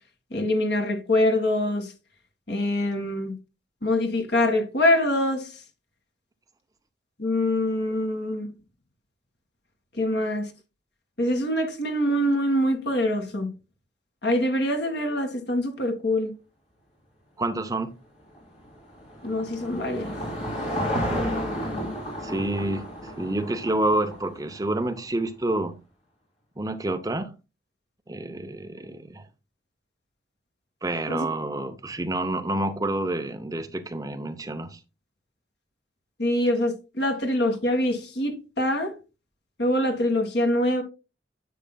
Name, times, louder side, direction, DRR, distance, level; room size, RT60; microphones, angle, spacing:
voice 1, 0.3-1.9 2.5-3.4 3.8-5.5 7.2-8.5 10.0-10.5 11.2-13.5 14.2-16.3 19.2-20.1 31.1-31.3 36.2-39.0 39.6-40.8, left 1 dB, 60° left, 1.9 m, -24 dB
voice 2, 17.4-17.9 20.9-21.3 22.2-25.8 26.6-27.3 28.1-29.3 30.8-34.8, right 1 dB, 20° right, 0.7 m, -28 dB
Car passing by / Engine, 18.3-24.8, equal, 35° left, 3.6 m, -32 dB
10.0 x 7.4 x 2.2 m
head